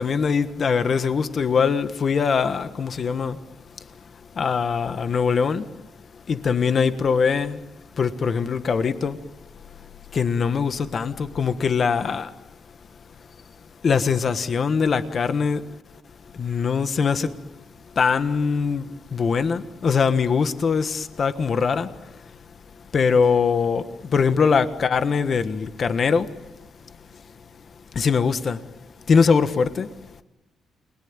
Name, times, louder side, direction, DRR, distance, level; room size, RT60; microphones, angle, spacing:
voice 1, 0.0-3.4 4.3-5.7 6.3-7.6 7.9-9.2 10.1-12.3 13.8-15.6 16.3-17.4 17.9-22.1 22.9-26.4 27.9-28.7 29.1-29.9, left 5 dB, 45° left, 1.5 m, -22 dB
29.0 x 21.5 x 8.9 m
cardioid pair, 110°, 0 cm